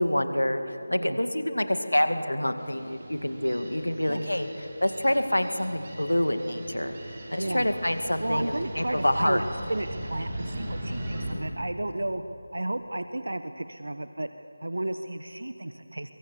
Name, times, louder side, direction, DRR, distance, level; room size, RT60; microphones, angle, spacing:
voice 1, 0.0-7.0 7.3-9.4, left 1 dB, 80° left, 8 dB, 2.2 m, -27 dB
sound 1, 2.6-11.3, right 1 dB, 30° right, 4.6 m, -39 dB
voice 2, 8.2-12.2 12.5-16.1, right 1 dB, 65° right, 10 dB, 1.0 m, -33 dB
23.5 x 23.5 x 8.1 m, 2.7 s
figure-of-eight pair, 165°, 0 cm